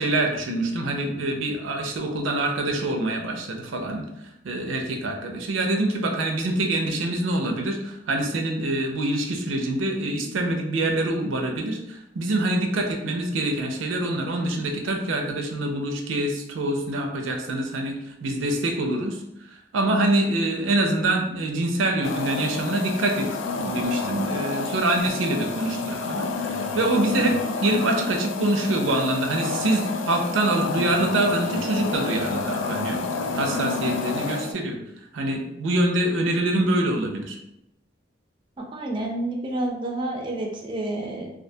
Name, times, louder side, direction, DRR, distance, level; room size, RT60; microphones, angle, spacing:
voice 1, 0.0-4.0 4.4-19.2 19.7-23.3 23.6-33.0 33.3-34.8 35.1-37.4, right 1 dB, 90° right, 3 dB, 0.5 m, -25 dB
sound 1, 22.0-34.5, left 4 dB, 80° left, 0.3 m, -29 dB
voice 2, 38.7-41.3, right 1 dB, 25° right, 0 dB, 0.3 m, -29 dB
2.4 x 2.2 x 2.6 m, 0.85 s
head